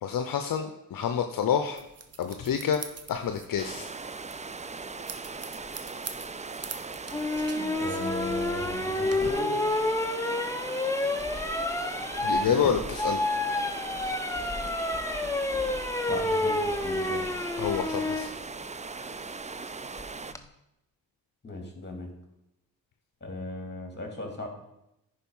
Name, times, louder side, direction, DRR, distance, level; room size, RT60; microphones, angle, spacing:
voice 1, 0.0-1.8 2.2-2.8 3.1-3.9 12.2-13.2 17.6-18.3, left 8 dB, 65° left, 6 dB, 0.7 m, -28 dB
sound 1, 1.8-9.3, right 5 dB, 40° right, 1.1 m, -44 dB
sound 2, 3.6-20.3, right 4 dB, 20° right, 0.5 m, -39 dB
sound 3, 7.1-18.3 20.0-20.4, left 2 dB, 10° left, 0.9 m, -29 dB
voice 2, 7.8-9.6 12.5-12.7 16.1-17.2 21.4-22.1 23.2-24.5, left 2 dB, 30° left, 3 dB, 2.8 m, -37 dB
10.0 x 5.0 x 5.5 m, 0.86 s
supercardioid pair, 50°, 36 cm